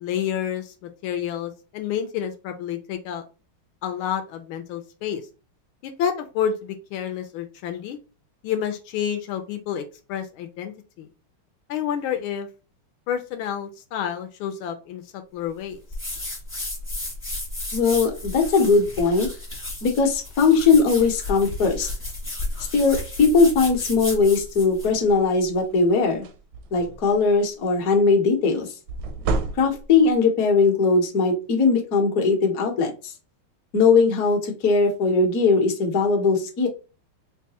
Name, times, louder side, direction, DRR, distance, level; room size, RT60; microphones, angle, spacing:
voice 1, 0.0-3.2 3.8-5.2 5.8-8.0 8.4-10.7 11.0-11.1 11.7-12.5 13.1-15.0 15.3-15.8, left 9 dB, 80° left, 6 dB, 1.4 m, -29 dB
sound 1, 15.9-24.9, left 2 dB, 10° left, 0.6 m, -33 dB
voice 2, 17.7-19.3 19.8-21.9 22.7-26.3 26.7-28.7 29.5-33.1 33.7-36.7, left 4 dB, 55° left, 1 dB, 1.1 m, -20 dB
sound 2, 24.9-25.2 25.7-25.8 26.1-27.2 28.9-30.1, right 3 dB, 75° right, 1.1 m, -29 dB
4.6 x 2.2 x 2.8 m, 0.33 s
omnidirectional pair, 2.3 m